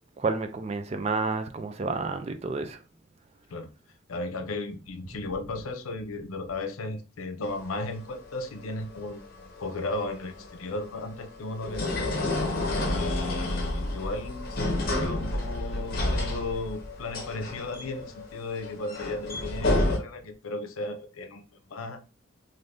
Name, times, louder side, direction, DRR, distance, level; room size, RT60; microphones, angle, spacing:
voice 1, 0.2-2.8, right 4 dB, 30° right, 0.3 m, -30 dB
voice 2, 4.1-12.1 12.8-22.1, left 2 dB, 90° left, 0.6 m, -35 dB
sound 1, 7.4-20.0, left 1 dB, 45° left, 0.7 m, -30 dB
2.6 x 2.6 x 3.4 m
head